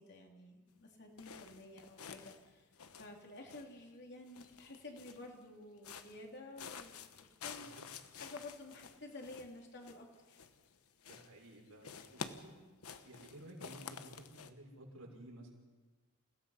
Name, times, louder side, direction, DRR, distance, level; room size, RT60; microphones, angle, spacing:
voice 1, 0.0-10.4, left 2 dB, 50° left, 1 dB, 3.1 m, -52 dB
sound 1, 1.2-3.9 4.3-5.3 5.8-6.3 6.6-10.8 11.0-11.5 11.8-14.5, left 6 dB, 75° left, 1.1 m, -50 dB
voice 2, 11.0-12.5 13.0-15.5, right 1 dB, 80° right, -2 dB, 6.0 m, -54 dB
28.5 x 17.0 x 5.7 m, 1.3 s
head